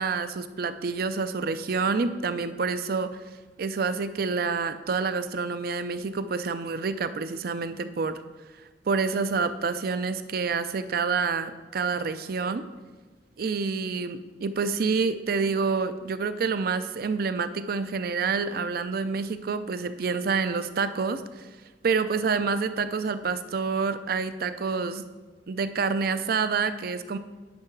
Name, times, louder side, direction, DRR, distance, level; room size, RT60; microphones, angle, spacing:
voice 1, 0.0-3.2 3.6-8.2 8.9-12.6 13.4-21.5 21.8-25.0 25.5-27.2, right 5 dB, 55° right, 11 dB, 0.5 m, -28 dB
9.6 x 4.7 x 5.9 m, 1.3 s
head